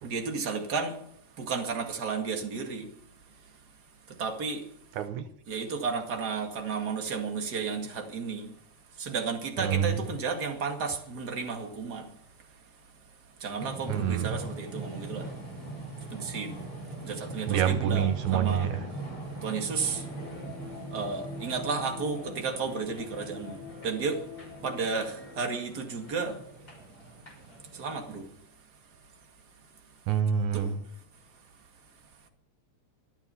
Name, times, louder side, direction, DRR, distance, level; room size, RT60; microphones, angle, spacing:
voice 1, 0.0-1.0 1.4-2.9 4.2-4.6 5.5-8.5 9.0-12.1 13.4-15.3 16.1-16.5 17.0-18.7 19.4-20.0 20.9-24.2 24.6-26.4 27.7-28.2 30.5-30.8, right 5 dB, 35° right, 2.4 m, -32 dB
voice 2, 5.0-5.3 9.6-10.0 13.9-14.4 17.4-18.8 30.1-30.8, right 8 dB, 80° right, 2.3 m, -27 dB
sound 1, 13.6-28.2, right 2 dB, 30° left, 6.9 m, -41 dB
sound 2, 19.9-25.4, left 8 dB, 80° left, 4.2 m, -46 dB
25.5 x 9.0 x 5.6 m
omnidirectional pair, 3.4 m